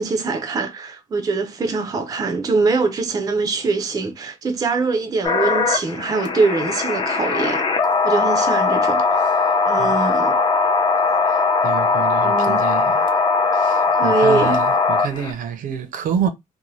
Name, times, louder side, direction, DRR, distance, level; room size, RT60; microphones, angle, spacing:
voice 1, 0.0-7.6 8.0-9.2 9.7-10.4 12.2-12.6 14.0-14.6, right 4 dB, 25° right, 0.4 m, -23 dB
sound 1, 5.2-15.3, left 4 dB, 35° left, 0.5 m, -19 dB
voice 2, 9.2-10.2 11.3-13.2 13.5-16.3, right 8 dB, 75° right, 0.6 m, -28 dB
2.7 x 2.1 x 3.0 m
cardioid pair, 160°, 14 cm